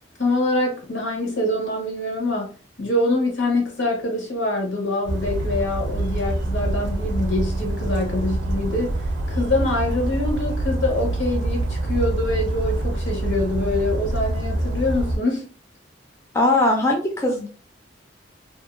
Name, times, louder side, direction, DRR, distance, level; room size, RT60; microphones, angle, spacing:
voice 1, 0.2-15.5, left 2 dB, 75° left, 1.0 m, -25 dB
Bird vocalization bird call bird song, 5.1-15.2, right 2 dB, 65° right, 0.4 m, -25 dB
voice 2, 16.3-17.5, left 2 dB, 15° left, 0.3 m, -20 dB
2.6 x 2.2 x 2.4 m
head